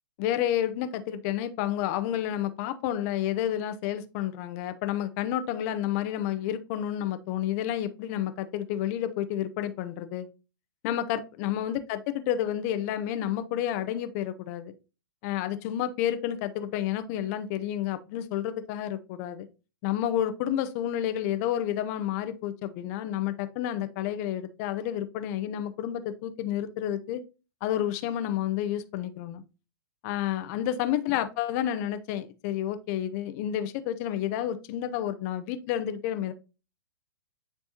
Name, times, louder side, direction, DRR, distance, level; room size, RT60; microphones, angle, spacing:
voice 1, 0.2-10.3 10.8-14.7 15.2-19.5 19.8-27.2 27.6-29.4 30.0-36.3, left 11 dB, 45° left, 11 dB, 0.8 m, -30 dB
9.8 x 3.5 x 2.8 m, 0.31 s
hypercardioid pair, 115°, 12 cm